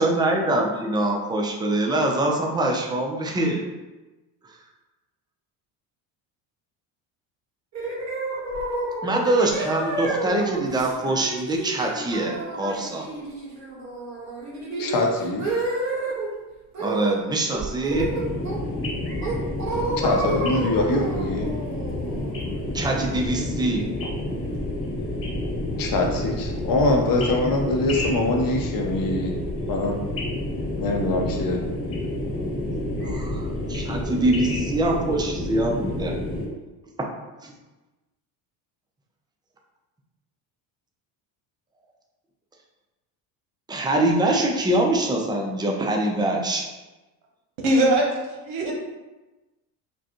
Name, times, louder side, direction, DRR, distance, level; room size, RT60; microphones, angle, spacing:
voice 1, 0.0-3.6 9.0-13.1 16.8-18.1 22.7-23.9 33.0-36.2 37.4-37.5 43.7-46.6, right 1 dB, 10° right, 0 dB, 0.5 m, -24 dB
sound 1, 7.7-16.3 16.7-17.2 17.5-18.8 19.2-23.0, right 2 dB, 35° right, 1.4 m, -30 dB
voice 2, 14.8-15.4 20.0-21.6 25.8-29.3 29.7-30.0 30.8-31.6, left 2 dB, 45° left, 2 dB, 0.8 m, -23 dB
sound 2, 17.9-36.5, left 1 dB, 30° left, 1.2 m, -29 dB
voice 3, 47.6-48.7, right 1 dB, 80° right, 0 dB, 1.0 m, -21 dB
5.1 x 2.3 x 2.9 m, 1.1 s
supercardioid pair, 100°, 46 cm